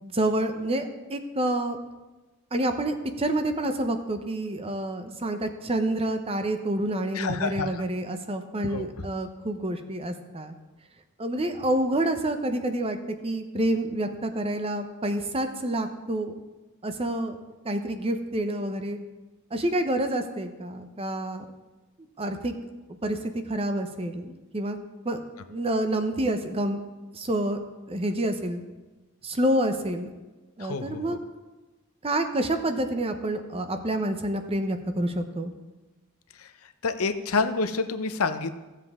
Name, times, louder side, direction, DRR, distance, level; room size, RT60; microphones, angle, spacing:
voice 1, 0.0-1.8 2.5-10.5 11.2-13.0 13.2-16.3 16.8-17.4 17.6-19.0 19.5-21.4 22.2-22.5 23.0-23.2 23.5-24.8 25.0-25.2 25.5-26.8 27.1-27.6 27.9-28.6 29.2-30.1 30.6-31.2 32.0-35.5, right 1 dB, 25° right, 7 dB, 0.7 m, -28 dB
voice 2, 7.1-7.8 8.6-8.9 30.6-31.2 36.4-36.5 36.8-38.6, left 4 dB, 75° left, 10 dB, 0.7 m, -28 dB
15.0 x 7.5 x 3.6 m, 1.2 s
head